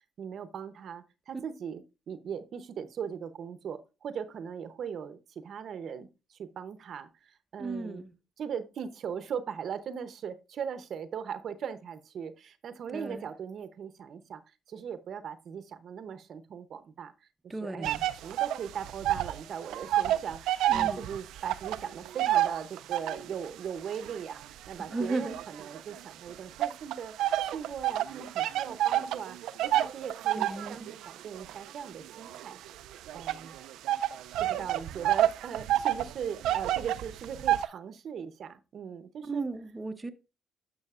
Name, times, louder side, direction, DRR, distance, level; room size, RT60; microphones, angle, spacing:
voice 1, 0.2-8.0 8.4-14.4 14.7-27.1 27.4-32.6 33.1-33.6 34.4-39.5, right 7 dB, 55° right, 0.7 m, -39 dB
voice 2, 7.6-8.1 12.9-13.2 17.5-18.0 20.7-21.0 24.9-25.4 30.4-30.8 39.3-40.1, right 3 dB, 15° right, 0.7 m, -34 dB
sound 1, 17.8-19.4 19.7-23.3 23.9-26.0 26.6-37.7, right 13 dB, 85° right, 0.4 m, -29 dB
11.0 x 6.3 x 2.4 m
cardioid pair, 110°, 0 cm